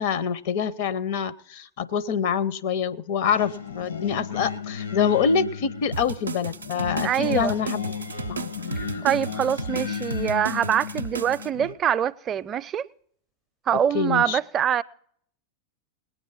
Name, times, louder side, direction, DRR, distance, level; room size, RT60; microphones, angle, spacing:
voice 1, 0.0-7.9 8.3-8.5 13.9-14.4, left 7 dB, 55° left, 0.7 m, -26 dB
Singing, 3.3-11.7, left 7 dB, 75° left, 1.2 m, -34 dB
sound 1, 5.9-11.5, right 4 dB, 85° right, 0.5 m, -34 dB
voice 2, 7.0-7.5 9.0-12.9 13.7-14.8, right 9 dB, 30° right, 0.5 m, -24 dB
19.0 x 9.2 x 5.6 m
figure-of-eight pair, 90°, 0 cm